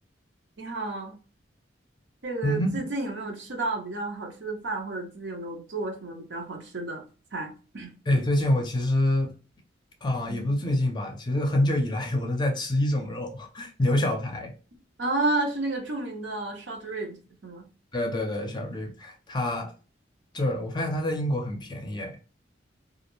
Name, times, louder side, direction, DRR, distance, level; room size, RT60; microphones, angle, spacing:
voice 1, 0.6-1.1 2.2-7.0 7.3-7.9 10.3-10.5 15.0-17.7, right 2 dB, 70° right, 2 dB, 0.8 m, -31 dB
voice 2, 2.4-2.8 8.1-9.3 10.0-14.5 17.9-19.7 20.3-22.2, left 1 dB, 25° left, 2 dB, 0.6 m, -26 dB
2.4 x 2.1 x 2.9 m, 0.36 s
head